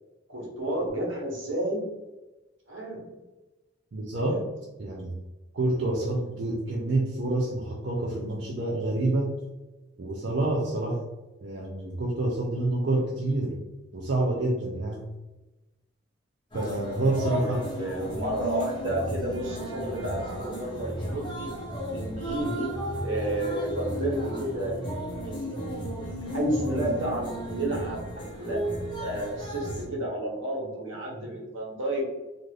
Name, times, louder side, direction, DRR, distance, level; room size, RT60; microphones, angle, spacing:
voice 1, 0.3-1.8 2.7-3.1 4.3-4.4 17.3-21.5 21.9-22.7 23.0-24.8 25.1-25.9 26.3-28.0 28.4-28.7 29.0-32.0, right 1 dB, 80° right, -3 dB, 1.0 m, -31 dB
voice 2, 3.9-4.4 4.8-5.2 5.5-9.4 10.0-11.0 11.4-13.6 13.9-15.1 16.5-17.7, right 2 dB, 55° right, -3 dB, 0.4 m, -27 dB
sound 1, 16.5-29.9, right 1 dB, 25° left, 0.7 m, -34 dB
2.5 x 2.5 x 3.2 m, 1.1 s
head